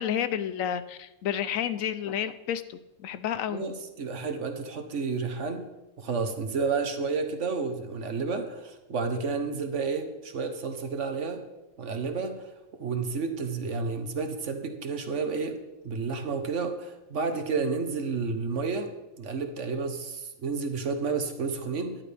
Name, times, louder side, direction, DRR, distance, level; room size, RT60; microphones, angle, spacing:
voice 1, 0.0-3.6, left 9 dB, 75° left, 12 dB, 1.0 m, -30 dB
voice 2, 3.5-5.6 6.0-11.4 11.8-12.5 12.8-15.6 15.8-18.9 19.2-22.0, right 4 dB, 60° right, 7 dB, 1.4 m, -31 dB
14.0 x 11.0 x 3.4 m, 1.0 s
omnidirectional pair, 1.5 m